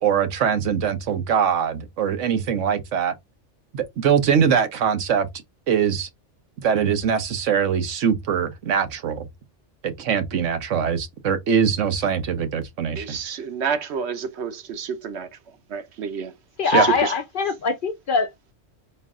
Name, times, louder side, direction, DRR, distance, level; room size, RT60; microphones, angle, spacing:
voice 1, 0.0-3.1 3.7-5.3 5.7-6.1 6.6-9.3 9.8-13.1 16.7-16.9, right 7 dB, 90° right, 1.2 m, -22 dB
voice 2, 13.0-15.3 15.7-16.3 16.6-17.1, right 7 dB, 65° right, 1.0 m, -29 dB
voice 3, 16.6-18.5, left 5 dB, 55° left, 0.6 m, -23 dB
3.9 x 2.5 x 3.6 m
omnidirectional pair, 1.2 m